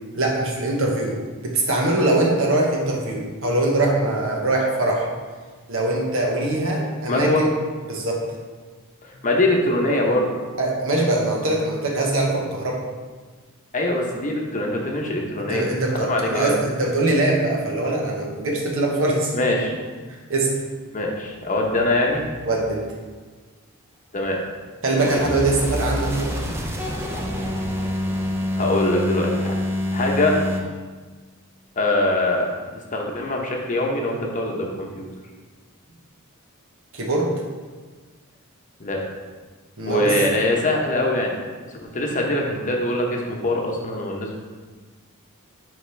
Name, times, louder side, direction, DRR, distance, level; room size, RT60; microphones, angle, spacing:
voice 1, 0.2-5.1 5.7-7.5 7.9-8.2 10.6-12.8 15.5-19.3 20.1-20.6 22.5-22.8 24.8-26.3 36.9-37.3 39.8-40.1, right 2 dB, 65° right, -1 dB, 1.2 m, -22 dB
voice 2, 7.1-7.5 9.0-10.3 13.7-15.7 15.9-16.6 19.3-19.8 20.9-22.2 24.1-24.4 28.5-29.5 29.9-30.3 31.8-32.5 32.9-35.1 38.8-39.0 39.8-41.3 41.7-44.4, left 1 dB, 35° left, 0 dB, 0.9 m, -23 dB
sound 1, 25.0-30.6, left 1 dB, 10° right, 0.6 m, -26 dB
9.9 x 3.5 x 3.3 m, 1.4 s
head